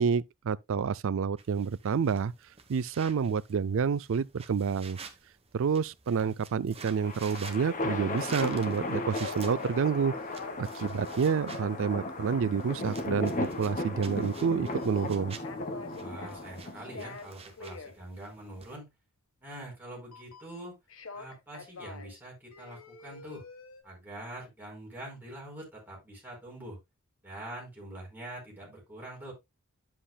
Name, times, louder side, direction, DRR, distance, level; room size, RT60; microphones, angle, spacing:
voice 1, 0.0-2.3 2.7-5.0 5.5-10.1 10.6-15.4, right 6 dB, 65° right, 0.4 m, -29 dB
sound 1, 1.4-18.8, right 6 dB, 30° right, 1.0 m, -50 dB
sound 2, 4.9-5.0 8.3-9.9 10.1-11.3 14.4-14.5 14.8-16.5 16.8-18.0 20.1-20.6 20.9-22.2 22.5-23.8, left 4 dB, 70° left, 1.3 m, -46 dB
sound 3, 6.8-17.2, left 2 dB, 40° left, 1.4 m, -36 dB
voice 2, 16.0-18.9 19.4-20.7 21.1-23.5 23.8-26.8 27.2-29.3, right 1 dB, 10° right, 4.5 m, -44 dB
10.0 x 7.6 x 2.3 m
head